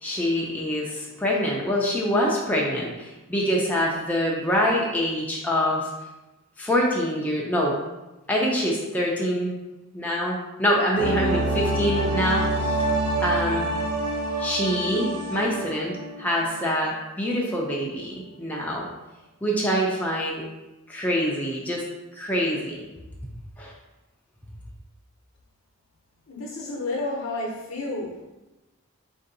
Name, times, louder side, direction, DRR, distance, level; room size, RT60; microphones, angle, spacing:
voice 1, 0.0-5.9 6.6-7.8 8.3-9.5 9.9-12.9 13.2-13.6 14.4-15.9 16.2-18.9 19.4-20.4 20.9-21.8 22.1-22.8 23.6-23.7, equal, 5° left, -4 dB, 0.4 m, -25 dB
sound 1, 11.0-16.6 16.9-17.0, right 1 dB, 90° right, 0.7 m, -27 dB
voice 2, 26.3-28.1, left 2 dB, 65° left, -2 dB, 0.8 m, -30 dB
4.4 x 2.6 x 3.9 m, 1.0 s
head